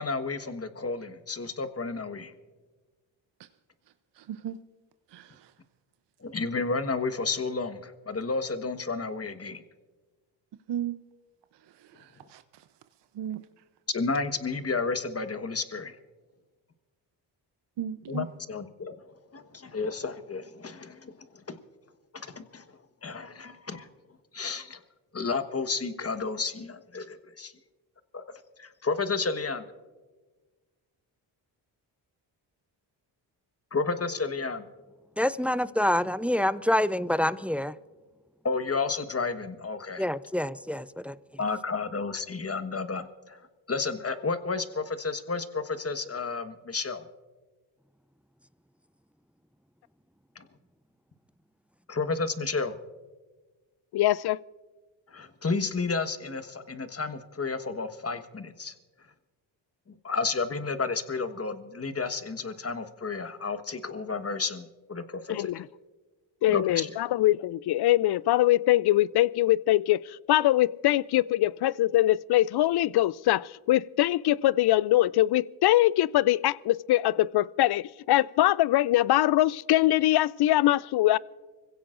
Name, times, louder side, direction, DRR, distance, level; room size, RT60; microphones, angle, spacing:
voice 1, 0.0-2.3 6.2-9.6 13.9-15.9 18.1-18.9 19.3-21.1 21.5-21.6 22.1-22.6 23.0-23.9 24.3-24.8 25.1-27.5 28.1-28.2 28.6-29.6 33.7-34.6 38.4-40.0 41.4-43.4 43.7-47.1 50.3-50.4 51.9-52.7 55.1-58.7 60.0-65.6 66.5-66.9, left 4 dB, 30° left, 1.4 m, -31 dB
voice 2, 4.2-4.6 5.1-5.5 10.7-11.0 11.8-12.6 13.1-13.4 17.8-18.3, right 10 dB, 55° right, 0.8 m, -36 dB
voice 3, 35.2-37.7 40.0-41.2, left 1 dB, 5° right, 0.4 m, -26 dB
voice 4, 53.9-54.4 65.3-65.7 66.4-70.0 70.3-81.2, left 15 dB, 55° left, 0.5 m, -23 dB
25.5 x 16.5 x 2.6 m
supercardioid pair, 50°, 49 cm